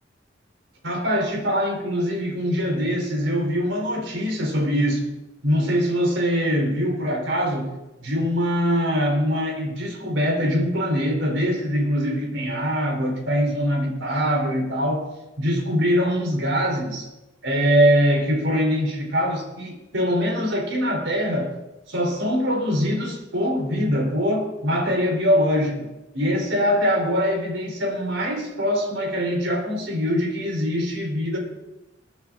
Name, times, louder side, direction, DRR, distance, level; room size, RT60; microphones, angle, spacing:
voice 1, 0.8-5.1 5.4-7.7 8.0-15.1 15.4-17.1 17.4-21.5 21.9-25.9 26.1-31.4, equal, 80° right, 1 dB, 3.8 m, -23 dB
21.5 x 9.4 x 3.8 m, 0.99 s
head